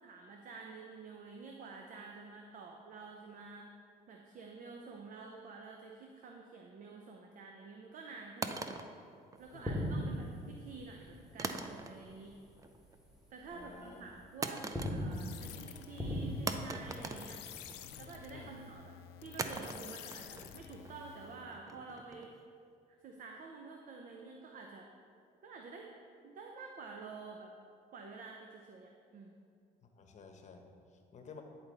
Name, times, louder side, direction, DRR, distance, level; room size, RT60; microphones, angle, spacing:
voice 1, 0.0-3.7 4.1-8.7 9.4-12.4 13.3-17.5 18.0-22.3 22.9-24.9 25.4-25.9 26.2-27.5 27.9-29.4, right 4 dB, 55° right, 1 dB, 0.7 m, -49 dB
sound 1, 8.4-9.8 11.4-12.2 12.5-13.0 14.4-15.4 15.6-15.7 16.5-18.0 19.4-22.4, right 3 dB, 20° right, 0.4 m, -42 dB
sound 2, 9.4-12.4 12.7-12.9 13.4-14.2 14.5-18.7, equal, 5° right, 1.2 m, -41 dB
voice 2, 13.5-14.0 18.3-18.5 29.9-31.4, left 5 dB, 45° left, 4 dB, 0.9 m, -53 dB
sound 3, 15.1-21.5, left 9 dB, 90° left, 0.4 m, -51 dB
10.0 x 4.1 x 4.0 m, 2.3 s
cardioid pair, 110°, 17 cm